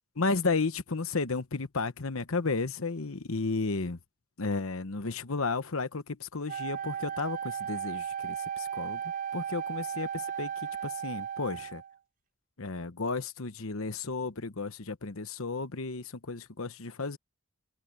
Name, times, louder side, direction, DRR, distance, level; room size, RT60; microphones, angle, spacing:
voice 1, 0.2-4.0 4.4-9.0 9.3-10.5 10.8-11.8 12.6-17.2, left 3 dB, 75° left, 1.1 m, -33 dB
Wind instrument woodwind instrument, 6.5-12.0, right 8 dB, 35° right, 0.5 m, -35 dB
head